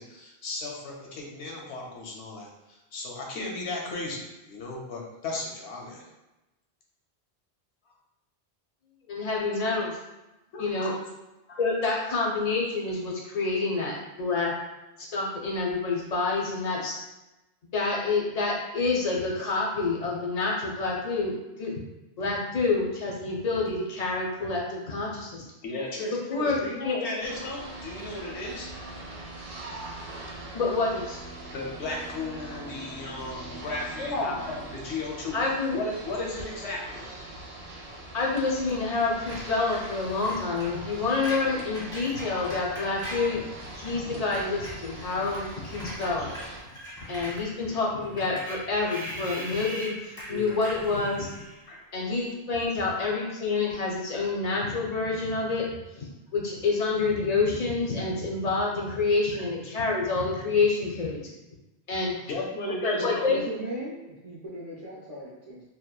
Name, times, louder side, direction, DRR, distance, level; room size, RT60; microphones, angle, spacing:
voice 1, 0.0-6.0 10.5-11.0 11.5-11.6 25.6-28.7 31.5-37.1 43.9-44.1 47.3-47.4 50.3-50.6 51.7-51.8 52.8-53.0 59.3-59.4 62.3-63.3, left 2 dB, 85° left, -1 dB, 0.9 m, -35 dB
voice 2, 9.1-9.9 10.6-10.9 11.6-14.5 15.0-17.0 17.7-21.8 22.2-25.4 26.3-26.6 26.8-27.0 30.5-31.2 34.0-34.4 35.3-35.8 38.1-43.4 43.7-46.3 47.1-51.3 51.9-55.7 56.0-56.1 56.3-61.3 61.9-62.2 62.8-63.4, left 3 dB, 50° left, -2 dB, 0.5 m, -28 dB
sound 1, 27.2-46.6, right 2 dB, 70° right, 0.8 m, -42 dB
Screech, 39.3-43.9 44.2-51.7, equal, 5° left, 0.5 m, -41 dB
voice 3, 62.5-65.6, right 1 dB, 50° right, -6 dB, 0.4 m, -37 dB
2.8 x 2.1 x 2.2 m, 1.0 s
omnidirectional pair, 1.1 m